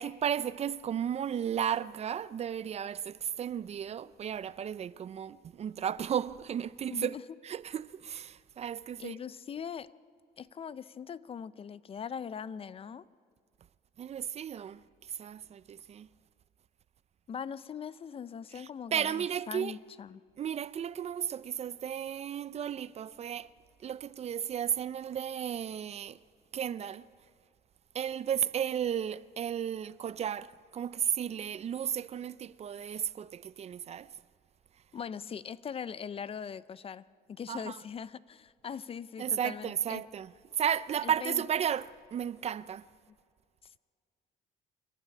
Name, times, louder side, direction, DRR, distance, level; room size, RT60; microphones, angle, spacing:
voice 1, 0.0-7.2 7.4-9.2 14.0-16.1 18.5-19.8 20.4-23.5 23.8-26.2 26.5-27.1 27.9-34.1 37.5-37.8 39.2-42.9, right 9 dB, 40° right, 0.5 m, -34 dB
voice 2, 6.9-7.2 9.0-9.9 10.4-13.1 17.3-20.2 34.9-40.0 41.0-41.4, left 7 dB, 35° left, 0.5 m, -41 dB
27.0 x 12.0 x 9.5 m
cardioid pair, 110°, 17 cm